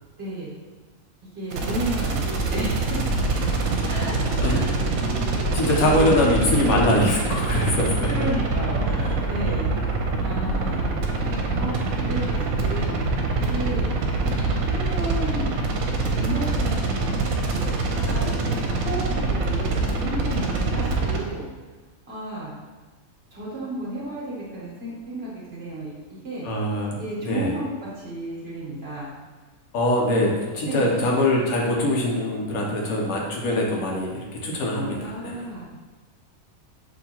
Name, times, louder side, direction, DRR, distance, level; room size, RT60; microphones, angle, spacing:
voice 1, 0.2-0.5 1.3-3.1 3.8-4.7 5.7-6.1 8.1-9.7 10.2-13.0 13.4-13.9 14.6-15.5 16.1-21.5 22.1-22.6 23.3-26.5 27.0-29.1 30.1-30.3 30.6-31.0 34.8-35.7, right 1 dB, 50° right, -7 dB, 1.3 m, -33 dB
sound 1, 1.5-21.2, right 3 dB, 85° right, 1.1 m, -24 dB
voice 2, 4.4-8.3 9.1-9.2 9.4-9.7 26.4-27.5 29.7-35.4, left 1 dB, 90° left, -1 dB, 1.3 m, -23 dB
6.1 x 2.7 x 2.9 m, 1.3 s
omnidirectional pair, 1.5 m